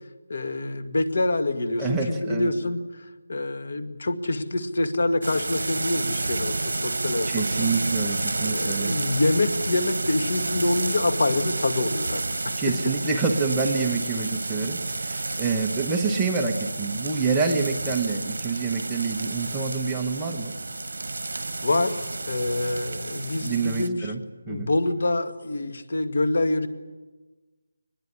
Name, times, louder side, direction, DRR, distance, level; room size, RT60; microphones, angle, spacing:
voice 1, 0.3-2.8 3.3-7.7 8.4-13.0 21.6-24.1 24.5-26.7, left 2 dB, 55° left, 9 dB, 1.9 m, -26 dB
voice 2, 1.8-2.5 7.3-8.9 12.6-20.5 23.4-24.7, right 4 dB, 5° right, -1 dB, 1.0 m, -27 dB
sound 1, 5.2-23.9, right 2 dB, 75° right, 1.4 m, -30 dB
22.5 x 20.5 x 10.0 m, 1.2 s
figure-of-eight pair, 175°, 0 cm